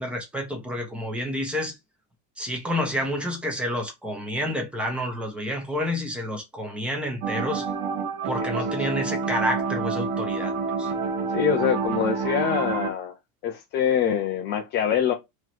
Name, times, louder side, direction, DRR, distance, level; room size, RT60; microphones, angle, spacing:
voice 1, 0.0-1.7 2.4-7.7 8.2-10.9, equal, ahead, 0.9 m, -29 dB
sound 1, 7.2-12.9, right 4 dB, 45° right, 1.0 m, -28 dB
voice 2, 11.3-13.1 13.4-15.1, left 8 dB, 25° left, 0.4 m, -24 dB
3.8 x 3.1 x 4.4 m
supercardioid pair, 155°, 47 cm